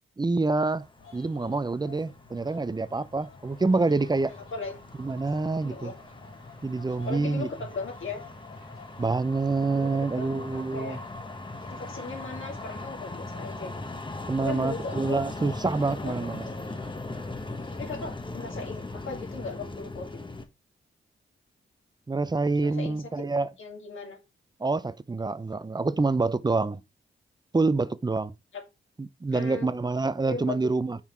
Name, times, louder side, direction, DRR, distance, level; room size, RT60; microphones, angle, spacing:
voice 1, 0.2-0.9 1.1-4.3 5.0-5.9 6.6-7.5 9.0-11.0 14.3-16.5 22.1-23.5 24.6-26.8 27.5-28.3 29.0-31.0, right 3 dB, 20° right, 0.6 m, -27 dB
sound 1, 0.7-20.5, left 2 dB, 25° left, 1.1 m, -40 dB
sound 2, 1.0-17.9, left 5 dB, 90° left, 3.2 m, -54 dB
sound 3, 3.5-16.8, left 2 dB, 45° left, 3.0 m, -58 dB
voice 2, 4.3-4.7 5.6-6.0 7.0-8.2 9.7-9.9 10.2-11.0 11.6-13.8 14.4-15.2 15.9-16.1 17.7-20.1 22.6-23.0 23.6-24.2 28.5-28.6 29.3-29.8 30.3-30.6, left 4 dB, 70° left, 2.3 m, -37 dB
5.6 x 4.5 x 4.5 m
cardioid pair, 50°, 21 cm